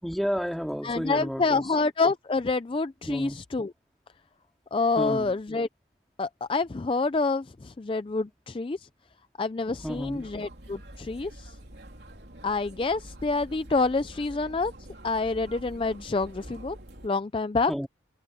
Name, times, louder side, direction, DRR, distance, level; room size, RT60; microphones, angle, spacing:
voice 1, 0.0-1.7 3.1-3.4 5.0-5.4 9.8-10.3 17.7-17.9, equal, ahead, 2.5 m, -31 dB
voice 2, 0.8-3.7 4.7-5.7 6.2-8.9 9.4-11.6 12.4-14.7 15.0-16.8 17.0-17.7, left 3 dB, 30° left, 0.4 m, -27 dB
sound 1, 9.7-17.1, right 1 dB, 60° right, 3.7 m, -46 dB
head